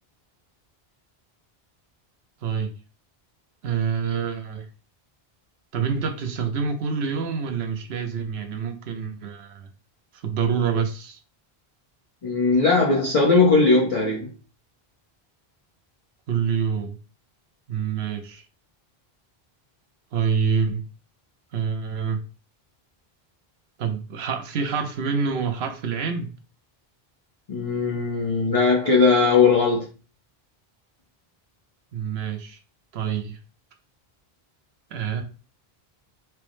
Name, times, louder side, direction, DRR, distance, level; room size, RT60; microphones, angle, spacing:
voice 1, 2.4-2.7 3.6-4.7 5.7-9.7 10.1-11.2 16.3-17.0 17.7-18.4 20.1-20.8 21.5-22.2 23.8-26.3 31.9-32.6 32.9-33.4 34.9-35.2, right 6 dB, 85° right, 0.9 m, -26 dB
voice 2, 12.2-14.3 27.5-29.9, left 4 dB, 40° left, 0.7 m, -19 dB
4.5 x 2.0 x 3.1 m
omnidirectional pair, 1.0 m